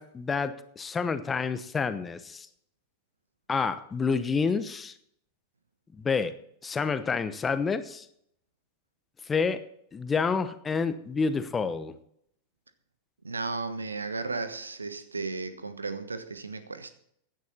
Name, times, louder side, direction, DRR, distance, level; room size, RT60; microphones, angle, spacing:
voice 1, 0.0-2.5 3.5-4.9 5.9-6.3 6.6-8.1 9.3-9.6 9.9-11.9, left 5 dB, 15° left, 1.0 m, -28 dB
voice 2, 13.2-16.9, right 3 dB, 75° right, 1.2 m, -34 dB
16.0 x 10.5 x 4.2 m
figure-of-eight pair, 90°, 0 cm